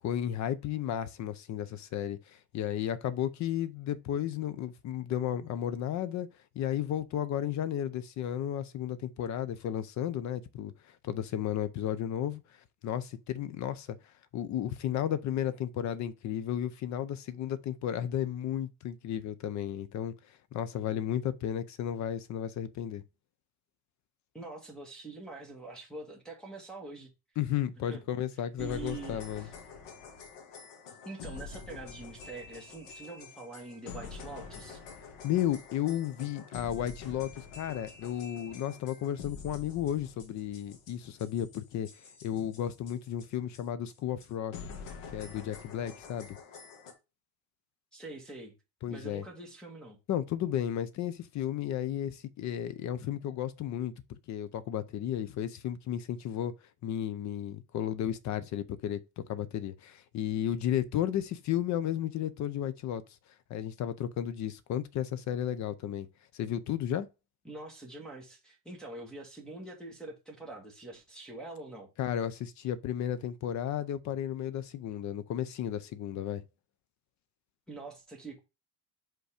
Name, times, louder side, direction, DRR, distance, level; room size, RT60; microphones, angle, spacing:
voice 1, 0.0-6.3 6.5-10.7 11.0-12.4 12.8-14.0 14.3-20.1 20.5-23.0 27.4-29.5 35.2-41.9 42.2-44.5 45.1-46.4 48.8-49.2 50.1-53.9 54.3-56.5 56.8-63.0 63.5-66.1 66.3-67.1 72.0-76.4, left 10 dB, 45° left, 0.7 m, -33 dB
voice 2, 24.3-27.1 27.9-28.0 28.6-29.5 31.0-34.8 47.9-48.5 48.9-50.0 67.4-71.9 77.7-78.4, right 2 dB, ahead, 1.6 m, -44 dB
sound 1, 28.6-43.3 43.5-43.6 43.9-44.0 44.2-44.3 44.5-46.9, left 5 dB, 90° left, 1.7 m, -47 dB
5.4 x 3.8 x 5.0 m
cardioid pair, 150°, 40 cm